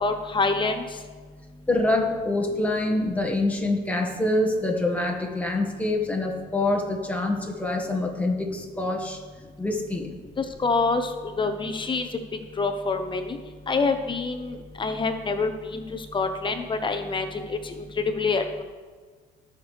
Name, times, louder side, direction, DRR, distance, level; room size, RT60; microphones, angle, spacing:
voice 1, 0.0-0.8 10.4-11.1 11.4-12.1 12.6-13.4 13.7-18.6, left 4 dB, 30° left, 7 dB, 0.9 m, -26 dB
voice 2, 1.7-9.2 9.6-10.1, left 2 dB, 10° left, 1 dB, 1.9 m, -25 dB
18.0 x 6.6 x 3.5 m, 1.5 s
cardioid pair, 110°, 17 cm